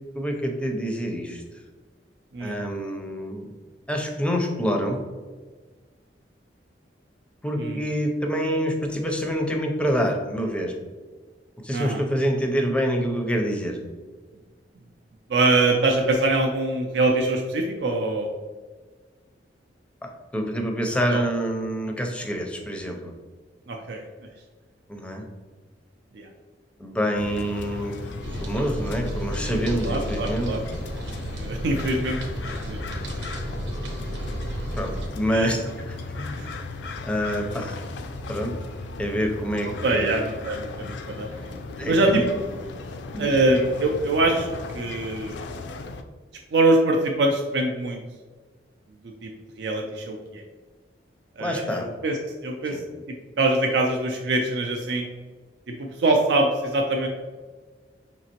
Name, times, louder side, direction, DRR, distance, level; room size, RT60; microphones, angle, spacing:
voice 1, 0.1-1.4 2.4-3.5 3.9-5.0 7.4-10.7 11.6-13.8 20.0-23.1 24.9-25.2 26.8-28.1 28.4-30.5 34.7-36.3 37.0-37.8 38.3-38.5 39.0-40.1 41.8-42.2 43.1-43.4 51.4-51.9 52.7-52.8, equal, 5° left, 2 dB, 0.5 m, -27 dB
voice 2, 11.7-12.0 15.3-18.3 21.1-21.2 23.7-24.0 26.1-26.3 29.8-30.6 31.3-32.2 32.5-33.0 35.3-35.5 36.3-36.5 39.6-41.3 41.8-42.2 43.2-44.5 44.7-45.4 46.5-48.0 49.0-49.3 49.6-50.4 51.4-52.8 53.1-55.1 55.7-57.1, right 2 dB, 70° right, 1 dB, 0.5 m, -24 dB
sound 1, 27.2-46.0, left 3 dB, 75° left, 0.4 m, -36 dB
sound 2, 28.2-35.1, equal, 90° right, 0.9 m, -33 dB
5.2 x 2.8 x 2.9 m, 1.4 s
head